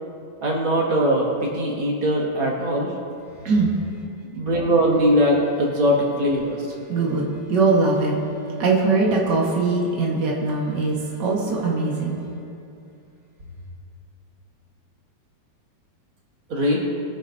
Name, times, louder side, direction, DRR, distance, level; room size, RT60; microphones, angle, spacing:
voice 1, 0.4-2.9 4.2-6.7 16.5-16.8, equal, 40° right, -4 dB, 2.3 m, -21 dB
voice 2, 6.9-8.1 8.6-12.2, right 3 dB, 65° right, -3 dB, 1.0 m, -21 dB
23.0 x 10.0 x 2.8 m, 2.6 s
omnidirectional pair, 4.4 m